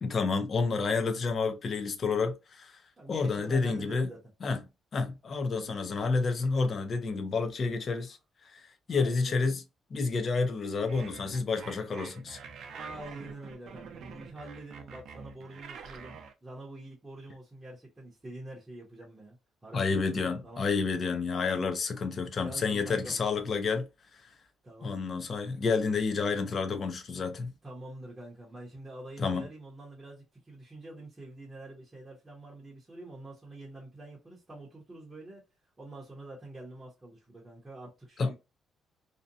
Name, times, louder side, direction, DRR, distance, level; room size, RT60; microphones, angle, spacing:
voice 1, 0.0-2.8 3.1-4.1 4.4-4.6 4.9-8.2 8.5-9.6 9.9-12.4 19.7-23.9 24.1-24.3 24.8-27.5 29.2-29.5 38.2-38.3, left 4 dB, 35° left, 0.4 m, -30 dB
voice 2, 3.0-4.2 8.9-9.5 12.7-19.4 19.6-20.6 22.4-23.2 24.6-25.0 27.6-35.4 35.8-38.3, right 2 dB, 15° right, 0.7 m, -46 dB
sound 1, 10.9-16.3, right 6 dB, 55° right, 0.4 m, -46 dB
2.6 x 2.1 x 2.5 m
cardioid pair, 170°, 0 cm